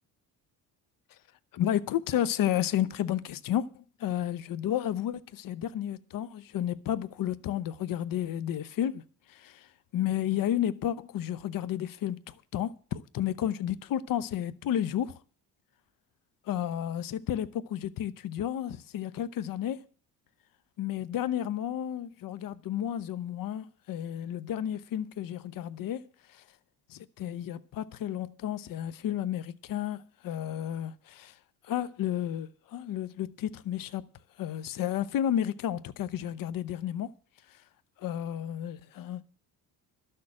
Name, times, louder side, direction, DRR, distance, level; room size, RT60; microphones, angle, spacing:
voice 1, 1.5-15.2 16.4-19.9 20.8-26.0 26.3-26.4 26.9-31.4 31.6-34.1 34.4-37.1 37.5-37.6 38.0-39.2, left 11 dB, 60° left, 0.9 m, -32 dB
12.0 x 6.7 x 8.6 m
cardioid pair, 105°, 37 cm